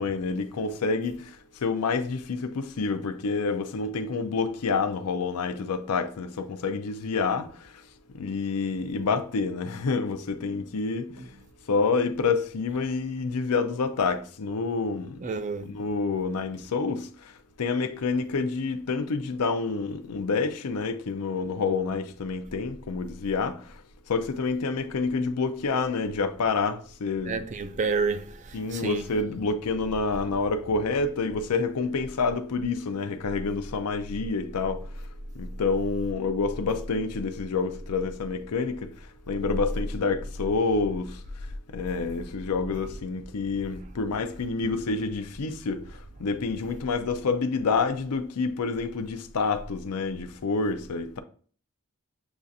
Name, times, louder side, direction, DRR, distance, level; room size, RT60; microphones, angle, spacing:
voice 1, 0.0-7.8 8.1-11.3 11.7-15.2 15.7-23.8 24.1-27.3 28.5-35.1 35.3-38.9 39.3-41.2 41.7-51.2, left 4 dB, 90° left, 0.5 m, -28 dB
voice 2, 11.1-11.4 15.2-15.7 27.2-29.1 41.7-41.9, right 4 dB, 35° right, 0.4 m, -30 dB
7.0 x 2.4 x 2.6 m
head